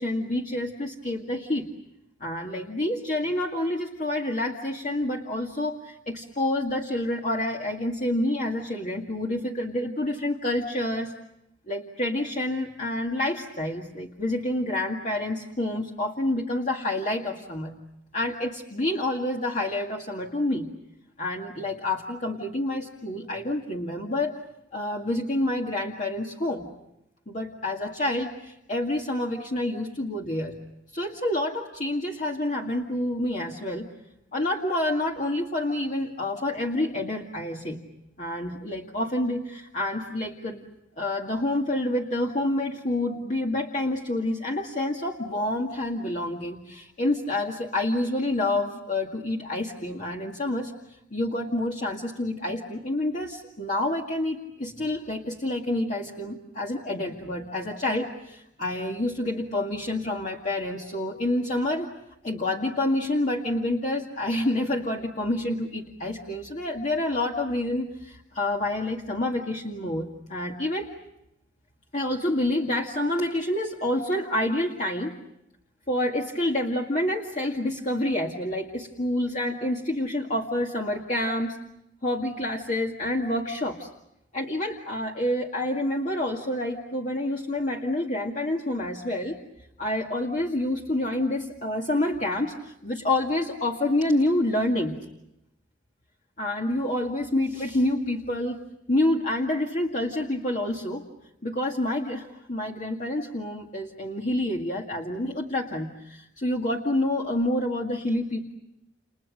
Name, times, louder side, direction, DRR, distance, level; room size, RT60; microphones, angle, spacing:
voice 1, 0.0-1.7 2.2-11.1 11.7-17.8 18.1-20.7 21.2-24.4 24.7-26.7 27.3-30.6 30.9-33.9 34.3-37.8 38.2-40.6 41.0-50.7 51.1-61.9 62.2-70.9 71.9-75.2 75.9-81.6 82.0-83.9 84.3-89.4 89.8-95.0 96.4-98.6 98.9-101.0 101.4-108.5, left 1 dB, 45° left, 0 dB, 2.1 m, -28 dB
30.0 x 29.5 x 6.4 m, 0.85 s
head